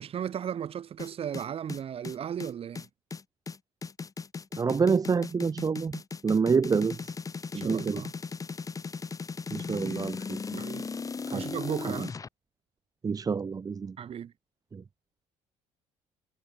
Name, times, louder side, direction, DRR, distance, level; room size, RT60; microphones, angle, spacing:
voice 1, 0.0-2.9 7.5-8.1 9.7-10.1 10.5-10.9 11.3-12.2 14.0-14.3, right 9 dB, 55° right, 5.5 m, -36 dB
sound 1, 1.0-12.3, left 5 dB, 30° left, 1.4 m, -37 dB
voice 2, 4.6-7.1 7.5-8.0 9.5-10.6 11.3-11.4 13.0-14.0 14.7-14.8, right 5 dB, 30° right, 1.2 m, -28 dB
supercardioid pair, 80°, 12 cm